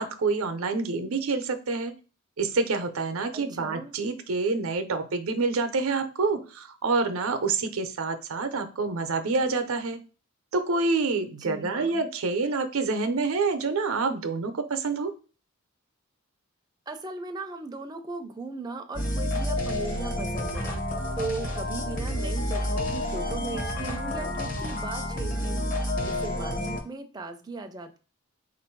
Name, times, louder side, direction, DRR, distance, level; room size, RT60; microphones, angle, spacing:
voice 1, 0.0-1.9 2.4-10.0 10.5-15.1, right 4 dB, 90° right, 8 dB, 0.6 m, -27 dB
voice 2, 3.3-3.9 11.2-12.0 16.9-20.8 21.2-25.7 26.0-28.0, right 3 dB, 20° right, 5 dB, 0.4 m, -38 dB
sound 1, 18.9-26.8, left 1 dB, 40° left, 0.8 m, -29 dB
3.8 x 2.5 x 4.4 m, 0.35 s
head